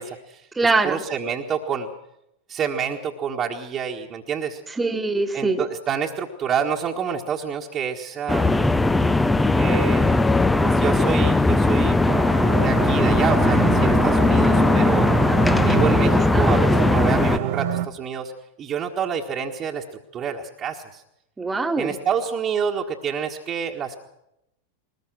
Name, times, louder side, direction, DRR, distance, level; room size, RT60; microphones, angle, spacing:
voice 1, 0.0-0.5 0.8-1.9 2.5-4.6 5.3-8.7 9.5-10.3 10.6-11.9 12.6-15.1 15.6-18.3 18.6-19.8 20.1-21.0 21.8-24.0, right 7 dB, 30° right, -2 dB, 1.6 m, -28 dB
voice 2, 0.5-1.0 4.7-5.6 15.3-15.4 15.9-16.9 21.4-21.9, right 3 dB, 10° right, 7 dB, 1.7 m, -24 dB
sound 1, 8.3-17.4, left 2 dB, 5° left, 0.7 m, -18 dB
life line, 12.0-17.9, right 11 dB, 50° right, 1.1 m, -28 dB
21.5 x 20.0 x 6.3 m, 0.82 s
figure-of-eight pair, 90°, 0 cm